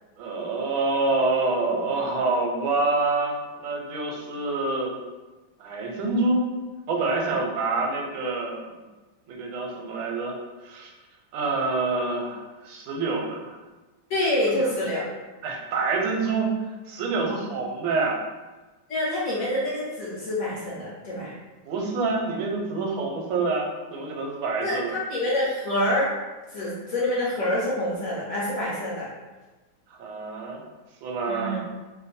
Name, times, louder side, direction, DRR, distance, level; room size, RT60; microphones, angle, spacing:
voice 1, 0.2-5.0 5.6-6.5 6.9-8.8 9.3-10.4 10.6-10.9 11.3-13.6 14.5-14.6 15.4-16.5 16.9-18.2 21.6-24.9 30.0-30.6 31.0-31.7, right 3 dB, 90° right, 0 dB, 1.4 m, -27 dB
voice 2, 14.1-15.0 18.9-21.3 24.6-26.1 26.5-29.1 31.3-31.6, left 1 dB, 55° left, -7 dB, 1.0 m, -26 dB
3.2 x 2.1 x 4.1 m, 1.2 s
omnidirectional pair, 2.1 m